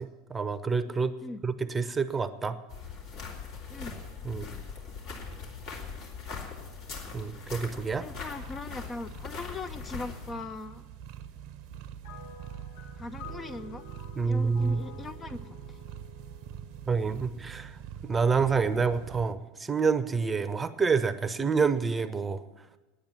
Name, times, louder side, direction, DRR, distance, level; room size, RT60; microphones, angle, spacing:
voice 1, 0.0-1.1 1.4-2.6 4.2-4.5 7.1-8.1 14.2-14.8 16.9-22.4, right 5 dB, 20° right, 13 dB, 0.8 m, -28 dB
sound 1, 2.7-10.3, left 5 dB, 55° left, 3.0 m, -41 dB
voice 2, 8.0-10.8 13.0-13.9 14.2-15.8, left 2 dB, 25° left, 10 dB, 0.6 m, -40 dB
sound 2, 8.4-19.3, right 9 dB, 55° right, 0.7 m, -45 dB
sound 3, 12.0-17.5, left 6 dB, 75° left, 2.3 m, -50 dB
10.5 x 8.9 x 10.0 m, 1.1 s
hypercardioid pair, 80°, 0 cm